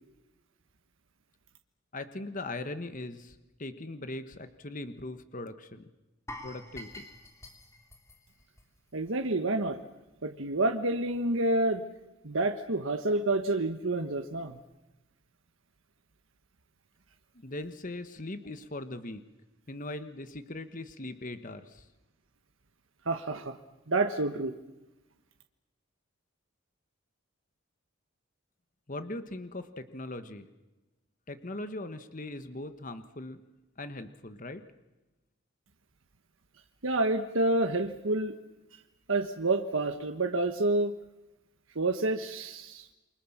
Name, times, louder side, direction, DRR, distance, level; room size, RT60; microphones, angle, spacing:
voice 1, 1.9-5.9 6.4-7.1 17.3-19.2 19.7-21.9 28.9-30.5 31.3-33.4 33.8-34.6, left 2 dB, 40° left, 10 dB, 1.3 m, -40 dB
sound 1, 6.3-9.3 9.5-9.7 10.2-10.3, left 1 dB, 15° left, 3.0 m, -47 dB
voice 2, 8.9-9.8 10.2-11.8 12.2-14.6 23.1-23.6 23.9-24.5 36.8-38.3 39.1-40.9 41.7-42.9, right 2 dB, 70° right, 6 dB, 1.3 m, -28 dB
29.0 x 23.5 x 7.3 m, 1.1 s
head